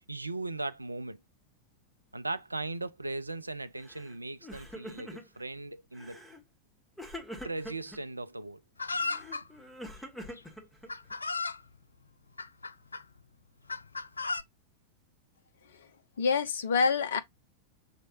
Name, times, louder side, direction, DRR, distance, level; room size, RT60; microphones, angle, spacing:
voice 1, 0.1-1.2 2.1-6.2 7.4-8.6, right 2 dB, 85° right, 0.4 m, -38 dB
Crying sobbing, 3.8-4.1 4.4-5.4 5.9-6.4 7.0-8.0 8.9-11.1, equal, 5° left, 1.5 m, -45 dB
Chicken rooster, 8.8-9.4 10.4-10.5 10.9-11.6 12.4-13.0 13.7-14.4, left 3 dB, 80° left, 0.3 m, -34 dB
voice 2, 16.2-17.2, left 5 dB, 60° left, 0.7 m, -27 dB
6.0 x 3.1 x 2.6 m
figure-of-eight pair, 90°, 0 cm